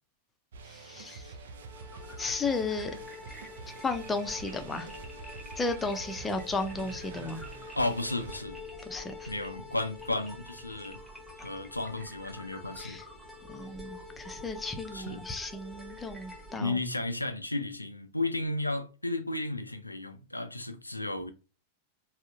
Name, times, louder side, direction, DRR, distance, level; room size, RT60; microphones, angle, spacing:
sound 1, 0.5-8.4, right 4 dB, 60° right, 0.4 m, -47 dB
voice 1, 0.7-1.3 2.2-2.9 3.8-4.9 5.6-7.4 8.8-9.3 12.8-13.0 13.5-16.8, left 3 dB, 15° left, 0.5 m, -34 dB
sound 2, 1.5-16.6, left 2 dB, ahead, 1.0 m, -46 dB
voice 2, 7.8-8.6 9.3-11.0 11.4-13.0 14.9-15.2 16.6-21.3, left 2 dB, 85° left, 0.4 m, -33 dB
3.7 x 2.1 x 2.4 m
figure-of-eight pair, 90°, 0 cm